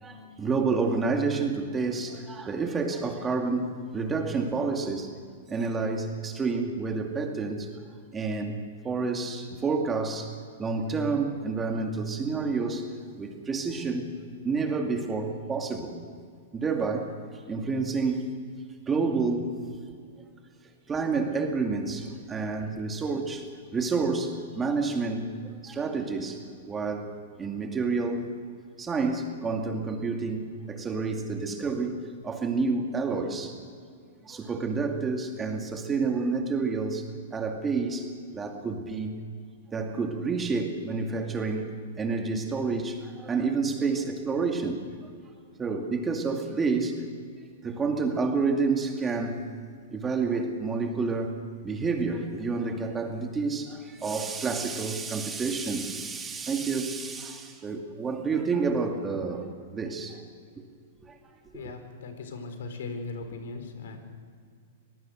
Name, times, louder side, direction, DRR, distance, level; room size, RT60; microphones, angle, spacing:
voice 1, 0.0-5.1 5.5-7.7 8.1-8.6 8.8-12.9 13.2-14.1 14.4-16.0 16.5-17.1 17.5-18.3 18.9-19.9 20.9-25.3 25.6-26.4 26.7-27.1 27.4-28.3 28.8-33.6 34.2-39.1 39.7-45.1 45.6-47.0 47.6-49.4 49.9-51.3 51.6-60.2 61.0-61.2, right 4 dB, 15° right, 3 dB, 2.3 m, -29 dB
voice 2, 61.5-64.0, left 3 dB, 75° left, 7 dB, 4.1 m, -38 dB
25.0 x 18.5 x 6.4 m, 2.1 s
hypercardioid pair, 150°, 0 cm